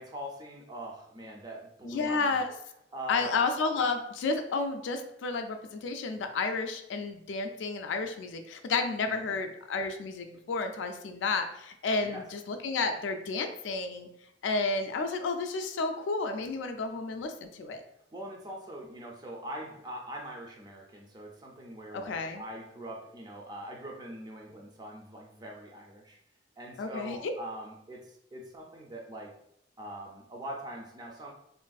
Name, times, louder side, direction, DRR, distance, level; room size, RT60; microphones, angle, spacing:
voice 1, 0.0-2.4 2.9-3.3 9.0-9.4 12.0-12.3 18.1-26.2 26.6-29.3 29.8-31.3, equal, 20° right, 0 dB, 0.4 m, -42 dB
voice 2, 1.8-2.5 3.1-14.1 14.4-17.8 21.9-22.4 26.8-27.3, left 4 dB, 80° left, 6 dB, 0.3 m, -31 dB
3.3 x 2.5 x 2.3 m, 0.77 s
head